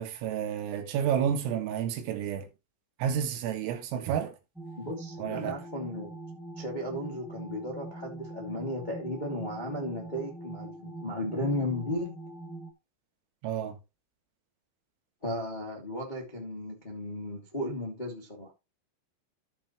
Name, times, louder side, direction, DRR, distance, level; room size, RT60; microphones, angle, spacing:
voice 1, 0.0-2.5 3.0-4.3 5.2-5.6 13.4-13.8, right 8 dB, 90° right, 4.3 m, -30 dB
sound 1, 4.5-12.7, right 2 dB, ahead, 0.3 m, -43 dB
voice 2, 4.8-6.1 6.5-12.2 15.2-18.5, left 1 dB, 15° left, 1.5 m, -35 dB
15.0 x 5.8 x 3.1 m
omnidirectional pair, 5.8 m